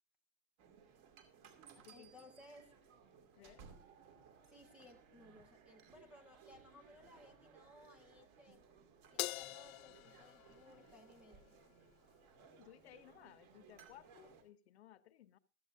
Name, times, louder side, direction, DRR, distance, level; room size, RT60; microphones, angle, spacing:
sound 1, 0.6-14.4, right 6 dB, 30° right, 2.5 m, -63 dB
voice 1, 1.9-2.7 4.5-8.7 9.1-11.6, left 1 dB, 5° right, 0.7 m, -61 dB
sound 2, 3.4-10.5, right 6 dB, 60° right, 3.7 m, -70 dB
Crash cymbal, 9.2-11.7, left 16 dB, 80° left, 0.5 m, -45 dB
voice 2, 12.5-15.4, left 12 dB, 50° left, 0.9 m, -60 dB
16.0 x 13.5 x 2.7 m
supercardioid pair, 175°, 41 cm